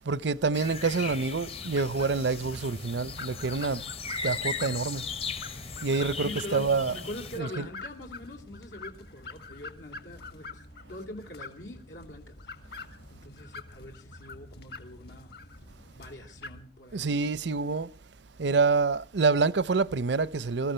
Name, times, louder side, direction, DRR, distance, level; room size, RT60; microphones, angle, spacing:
voice 1, 0.0-3.8 4.2-5.1 5.8-7.1 7.4-7.7 16.9-17.9 18.4-20.7, right 4 dB, 75° right, 0.6 m, -27 dB
sound 1, 0.5-7.4, left 4 dB, 35° left, 0.8 m, -37 dB
sound 2, 1.4-16.6, left 3 dB, 60° left, 1.9 m, -46 dB
voice 2, 6.2-10.6 10.9-12.3 12.7-12.8 13.1-15.3 15.9-17.1, left 1 dB, 85° left, 2.8 m, -43 dB
22.5 x 14.0 x 4.4 m
head